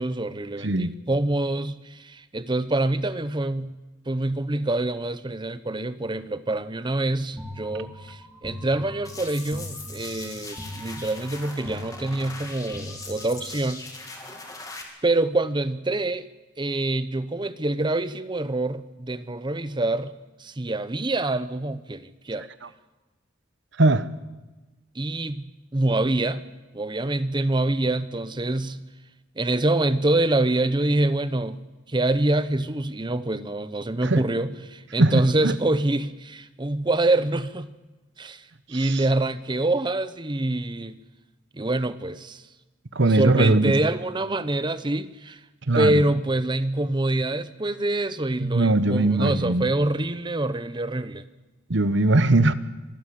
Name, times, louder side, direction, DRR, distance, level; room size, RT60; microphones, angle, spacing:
voice 1, 0.0-3.8 4.1-13.8 15.0-16.3 16.6-20.1 20.4-22.5 24.9-26.5 26.7-28.9 29.4-37.7 38.2-41.0 41.5-42.4 43.1-45.4 45.7-51.3, right 2 dB, 20° right, 0.8 m, -26 dB
sound 1, 7.4-13.7, equal, 5° right, 2.6 m, -41 dB
sound 2, 9.0-14.8, left 3 dB, 15° left, 2.6 m, -40 dB
voice 2, 23.8-24.1 34.0-34.2 35.0-35.5 38.7-39.0 42.9-43.7 45.7-46.0 48.4-49.6 51.7-52.5, right 2 dB, 60° right, 1.0 m, -20 dB
25.5 x 12.5 x 8.6 m
head